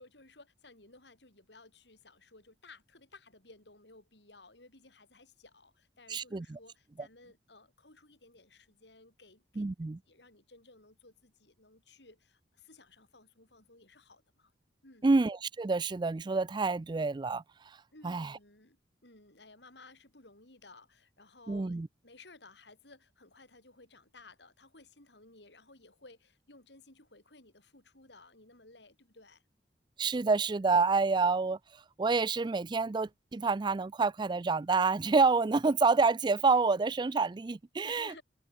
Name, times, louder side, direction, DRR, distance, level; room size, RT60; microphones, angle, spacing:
voice 1, 0.0-14.5 14.8-15.1 17.9-18.8 19.0-21.8 22.0-29.4 37.8-38.2, left 3 dB, 70° left, 6.7 m, -57 dB
voice 2, 6.1-6.6 9.6-10.0 15.0-17.8 18.0-18.3 21.5-21.9 30.0-38.2, right 4 dB, 25° right, 0.4 m, -28 dB
head